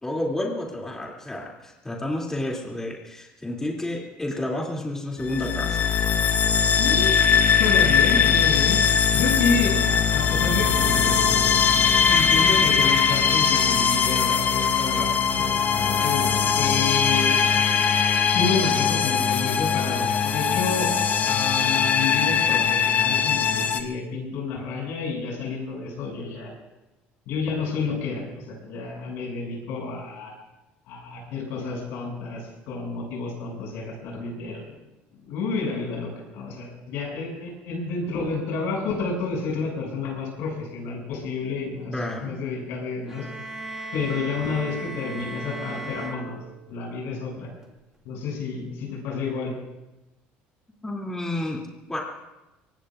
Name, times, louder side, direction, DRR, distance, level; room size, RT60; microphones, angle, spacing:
voice 1, 0.0-5.9 41.9-42.4 50.8-51.6 51.9-52.0, left 1 dB, 10° left, -2 dB, 2.9 m, -30 dB
sound 1, 5.2-23.8, left 7 dB, 45° left, 1.3 m, -21 dB
voice 2, 6.8-8.8 9.1-11.5 12.1-15.4 16.0-17.4 18.3-21.0 21.2-26.5 27.3-30.3 30.9-34.7 35.1-41.9 42.2-43.3 43.9-46.4 46.7-47.5 48.1-49.5, left 4 dB, 75° left, -1 dB, 7.0 m, -30 dB
sound 2, 43.1-46.9, right 2 dB, 15° right, 2.4 m, -37 dB
24.5 x 20.0 x 2.6 m, 0.99 s
supercardioid pair, 100°, 4 cm